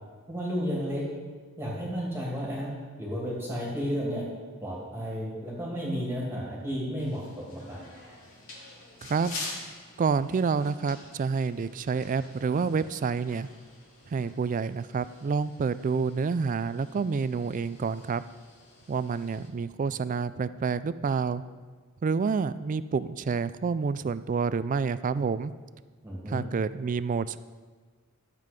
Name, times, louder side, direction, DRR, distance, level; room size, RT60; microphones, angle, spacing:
voice 1, 0.3-1.0 1.6-2.7 3.0-4.2 4.6-7.8 26.0-26.4, equal, 10° right, -5 dB, 2.3 m, -32 dB
sound 1, 7.0-19.5, left 2 dB, 60° left, 2.6 m, -46 dB
voice 2, 10.0-13.5 14.1-18.2 18.9-21.4 22.0-25.5 26.3-27.4, right 5 dB, 35° right, 15 dB, 0.3 m, -28 dB
13.0 x 7.6 x 5.2 m, 1.5 s
head